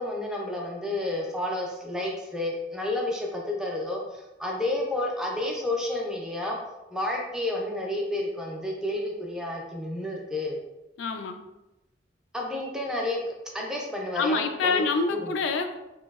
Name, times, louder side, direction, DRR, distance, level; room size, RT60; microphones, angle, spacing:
voice 1, 0.0-6.6 6.9-10.6 12.3-13.2 13.5-15.3, left 1 dB, 5° right, -1 dB, 0.4 m, -30 dB
voice 2, 11.0-11.4 14.1-15.8, left 4 dB, 85° left, 7 dB, 0.3 m, -26 dB
2.9 x 2.6 x 2.3 m, 0.97 s
head